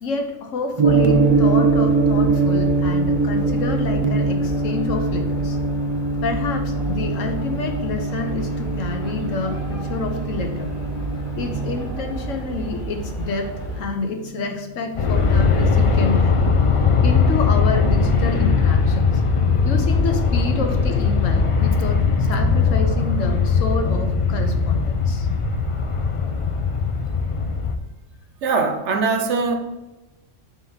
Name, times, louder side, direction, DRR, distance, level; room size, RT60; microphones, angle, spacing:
voice 1, 0.0-5.6 6.2-10.7 11.4-16.4 17.0-19.2 19.6-25.3, left 4 dB, 75° left, 5 dB, 1.2 m, -28 dB
sound 1, 0.8-13.8, right 2 dB, 40° left, 1.7 m, -32 dB
Gong, 0.8-14.9, right 3 dB, 50° right, 0.4 m, -23 dB
Aircraft, 15.0-27.8, left 4 dB, 55° left, 0.3 m, -19 dB
voice 2, 28.4-29.6, right 4 dB, 65° right, 6 dB, 1.0 m, -21 dB
5.8 x 3.6 x 5.5 m, 1.0 s
omnidirectional pair, 1.4 m